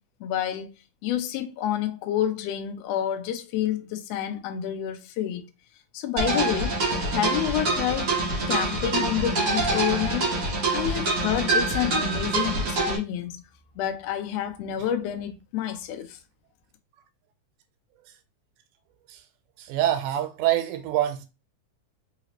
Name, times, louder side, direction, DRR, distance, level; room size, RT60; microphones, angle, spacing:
voice 1, 0.2-0.7 1.0-5.4 5.9-6.8 7.1-8.2 8.5-10.3 10.7-13.4 13.8-16.2, left 10 dB, 75° left, 1.5 m, -29 dB
sound 1, 6.2-13.0, right 2 dB, 45° right, 1.1 m, -25 dB
voice 2, 19.6-21.3, right 12 dB, 90° right, 2.1 m, -25 dB
4.8 x 2.8 x 2.9 m
omnidirectional pair, 3.6 m